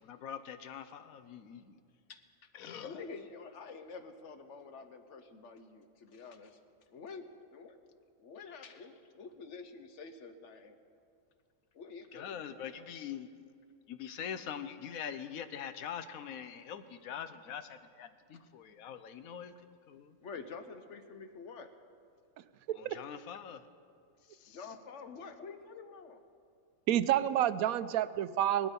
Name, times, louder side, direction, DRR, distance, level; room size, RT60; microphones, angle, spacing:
voice 1, 0.1-1.8 2.6-2.9 12.1-13.3 13.9-19.5 19.9-20.2 22.8-23.6 24.4-24.6, left 8 dB, 80° left, 11 dB, 1.2 m, -43 dB
voice 2, 2.1-2.5 2.8-6.6 6.9-7.8 8.2-10.8 11.7-12.9 16.8-16.9 17.3-17.6 18.3-18.5 20.2-21.7 24.5-26.2, left 4 dB, 60° left, 8 dB, 1.2 m, -48 dB
voice 3, 26.9-28.7, right 11 dB, 90° right, 14 dB, 1.0 m, -29 dB
19.0 x 12.5 x 5.3 m, 2.3 s
omnidirectional pair, 1.5 m